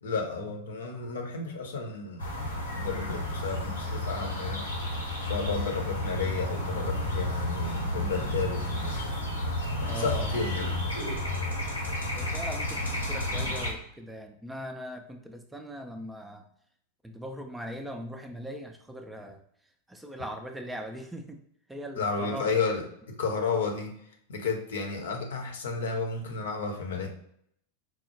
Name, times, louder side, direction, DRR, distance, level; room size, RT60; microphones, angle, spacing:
voice 1, 0.0-2.2 2.7-4.7 5.2-8.8 9.8-10.8 22.0-23.9 24.3-27.1, left 4 dB, 65° left, 2 dB, 0.7 m, -32 dB
sound 1, 2.2-13.7, left 1 dB, 85° left, 0.9 m, -31 dB
voice 2, 9.9-10.4 12.1-16.5 17.0-19.4 19.9-21.4 21.7-22.5, equal, 5° right, 4 dB, 0.4 m, -40 dB
4.5 x 2.0 x 2.9 m, 0.69 s
figure-of-eight pair, 90°, 0 cm